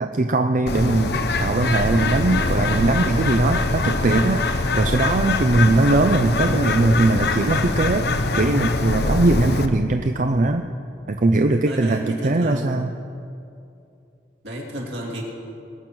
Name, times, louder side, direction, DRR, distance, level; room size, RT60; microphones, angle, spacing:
voice 1, 0.0-8.1 8.3-10.6 11.1-12.9, right 2 dB, 45° right, 6 dB, 0.5 m, -20 dB
Bird, 0.7-9.7, left 2 dB, 65° left, 0.8 m, -23 dB
voice 2, 11.7-12.7 14.4-15.2, equal, 70° right, -2 dB, 3.0 m, -31 dB
21.0 x 8.7 x 6.2 m, 2.6 s
head